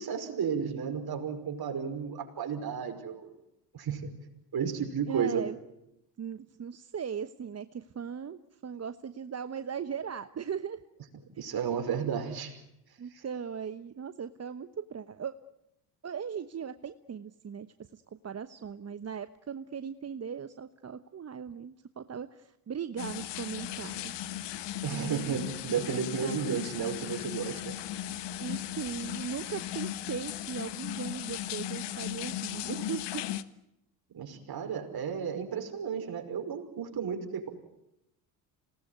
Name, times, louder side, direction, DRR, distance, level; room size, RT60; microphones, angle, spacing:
voice 1, 0.0-3.4 3.7-4.1 4.5-5.4 11.4-12.6 13.1-13.2 24.8-27.8 34.1-37.5, right 7 dB, 45° right, 5 dB, 5.3 m, -33 dB
voice 2, 5.1-5.5 6.2-10.8 13.0-15.3 16.0-24.1 24.9-25.4 25.9-26.6 28.4-33.2, right 7 dB, 30° right, 12 dB, 1.1 m, -38 dB
sound 1, 23.0-33.4, left 12 dB, 55° left, 1.5 m, -37 dB
27.0 x 18.5 x 9.5 m, 0.85 s
hypercardioid pair, 60°, 49 cm